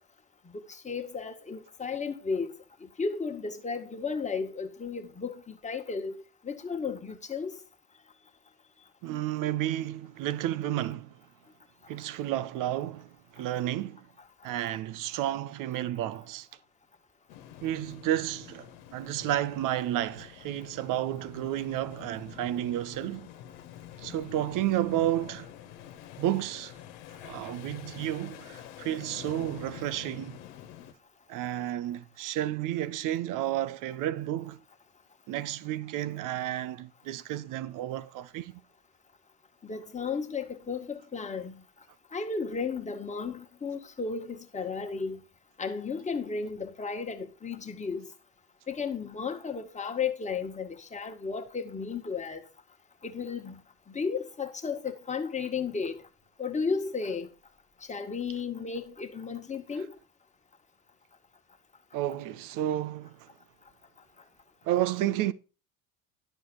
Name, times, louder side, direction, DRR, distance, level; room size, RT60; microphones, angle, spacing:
voice 1, 0.5-2.5 3.0-7.6 39.6-41.6 42.1-45.2 45.6-48.1 48.7-52.4 53.0-53.6 53.9-56.0 56.4-57.3 57.9-59.9, left 5 dB, 15° left, 1.9 m, -34 dB
voice 2, 9.0-11.1 11.9-14.1 14.4-16.5 17.6-23.3 24.0-25.5 26.2-26.7 27.2-30.4 31.3-34.6 35.3-38.6 59.8-59.9 61.9-63.3 64.6-65.3, right 13 dB, 45° right, 0.9 m, -31 dB
sound 1, 17.3-30.9, left 10 dB, 60° left, 1.6 m, -47 dB
11.0 x 7.0 x 4.6 m
hypercardioid pair, 75°, 43 cm